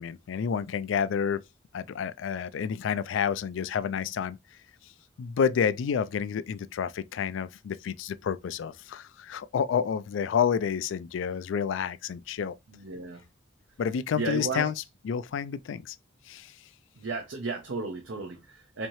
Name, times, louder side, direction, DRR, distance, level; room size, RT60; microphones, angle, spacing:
voice 1, 0.0-1.4 1.7-4.4 5.2-12.6 13.8-14.8 15.0-16.0 16.3-16.5, left 7 dB, 85° left, 0.3 m, -29 dB
voice 2, 12.8-13.2 14.2-14.7 17.0-18.9, right 3 dB, 90° right, 0.7 m, -34 dB
4.2 x 2.7 x 3.0 m
head